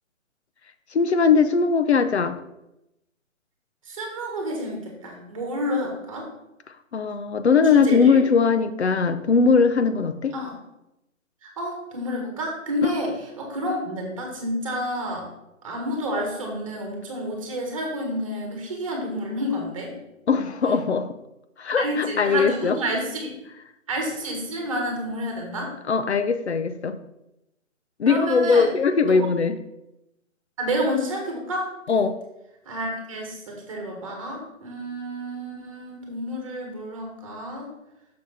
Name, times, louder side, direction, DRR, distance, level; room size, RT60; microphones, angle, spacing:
voice 1, 0.9-2.4 6.9-10.4 20.3-21.1 21.6-22.8 25.9-27.0 28.0-29.6 31.9-32.2, left 5 dB, 55° left, 10 dB, 0.7 m, -20 dB
voice 2, 3.9-6.3 7.7-8.2 10.3-10.5 11.4-15.3 15.6-19.9 21.8-23.3 23.9-25.7 28.0-28.7 29.0-29.3 30.6-31.7 32.6-37.7, equal, 25° right, 1 dB, 1.5 m, -29 dB
6.6 x 6.1 x 4.2 m, 0.90 s
hypercardioid pair, 165°, 40 cm